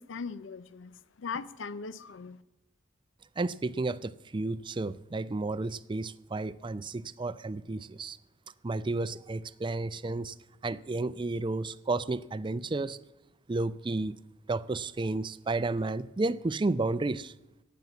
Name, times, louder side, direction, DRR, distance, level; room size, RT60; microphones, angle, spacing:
voice 1, 0.0-2.4, left 5 dB, 80° left, 0.6 m, -39 dB
voice 2, 3.4-8.2 8.6-10.3 10.6-13.0 13.5-14.2 14.5-17.3, right 2 dB, 25° right, 0.4 m, -32 dB
15.5 x 9.4 x 7.2 m
head